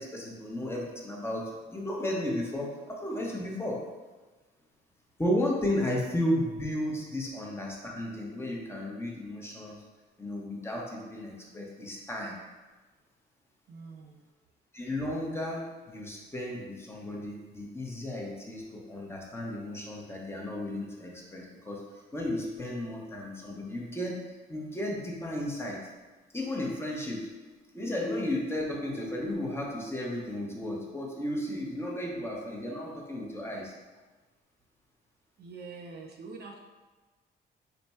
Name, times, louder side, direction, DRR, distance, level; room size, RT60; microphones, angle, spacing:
voice 1, 0.0-3.8 5.2-9.8 10.2-12.4 14.7-21.8 22.1-25.8 26.3-27.3 27.7-33.7, left 1 dB, 10° left, -2 dB, 0.8 m, -34 dB
voice 2, 13.7-14.2 35.4-36.6, right 4 dB, 55° right, 1 dB, 0.5 m, -45 dB
3.3 x 2.2 x 4.1 m, 1.2 s
cardioid pair, 90°, 20 cm